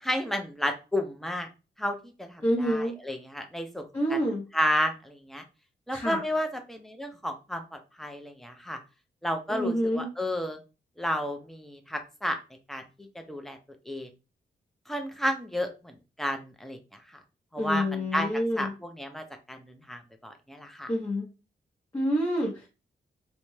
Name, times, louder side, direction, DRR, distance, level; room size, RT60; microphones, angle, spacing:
voice 1, 0.0-1.5 1.8-3.8 4.1-4.2 4.5-5.4 5.9-8.8 9.2-10.6 11.0-12.4 12.7-13.6 13.9-14.1 14.9-16.8 17.5-20.9, equal, ahead, 5 dB, 0.5 m, -32 dB
voice 2, 2.4-2.9 3.9-4.4 5.9-6.2 9.5-10.1 17.6-18.7 20.9-21.3 21.9-22.7, equal, 20° left, -4 dB, 1.0 m, -27 dB
2.6 x 2.1 x 3.1 m, 0.29 s
wide cardioid pair, 95°, 19 cm